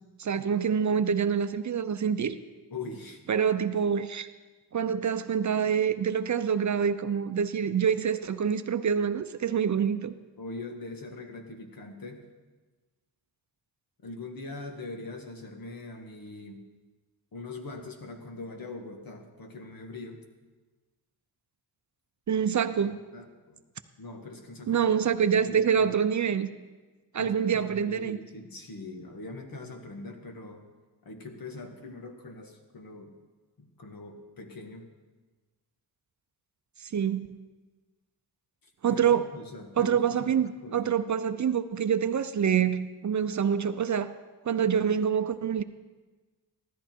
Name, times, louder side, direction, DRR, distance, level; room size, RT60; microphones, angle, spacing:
voice 1, 0.2-2.4 3.3-4.3 4.7-10.1 22.3-23.0 24.7-26.5 27.1-28.2 36.8-37.3 38.8-39.2 39.8-44.1 44.4-45.6, right 7 dB, 45° right, 11 dB, 0.6 m, -26 dB
voice 2, 2.7-3.2 10.4-12.2 14.0-16.6 17.3-20.2 22.8-23.6 24.0-24.8 25.3-25.9 27.2-30.6 31.0-33.1 33.6-34.9 38.6-40.9, left 3 dB, 55° left, 4 dB, 1.9 m, -42 dB
15.0 x 13.0 x 4.5 m, 1.3 s
cardioid pair, 90°, 41 cm